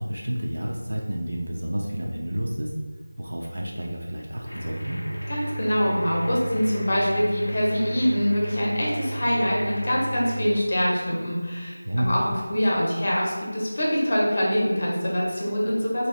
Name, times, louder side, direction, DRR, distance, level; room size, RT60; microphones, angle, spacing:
voice 1, 0.0-2.7 3.2-5.0 11.8-12.1, equal, 65° right, -1 dB, 0.4 m, -30 dB
sound 1, 4.5-10.4, right 1 dB, 90° left, 0.5 m, -33 dB
voice 2, 5.3-16.1, equal, 45° left, -4 dB, 0.8 m, -24 dB
2.7 x 2.3 x 3.1 m, 1.4 s
figure-of-eight pair, 170°, 0 cm